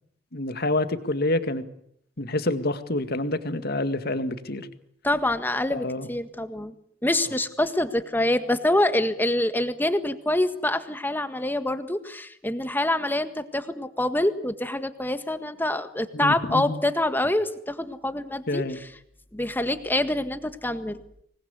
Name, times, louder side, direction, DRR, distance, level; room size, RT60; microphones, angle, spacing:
voice 1, 0.3-1.6 2.2-4.7 5.7-6.1 16.1-16.8 18.5-18.8, left 2 dB, 55° left, 10 dB, 2.0 m, -27 dB
voice 2, 5.0-6.7 7.0-18.6 19.3-21.0, left 1 dB, 10° left, 10 dB, 1.7 m, -26 dB
25.5 x 20.5 x 8.3 m, 0.71 s
head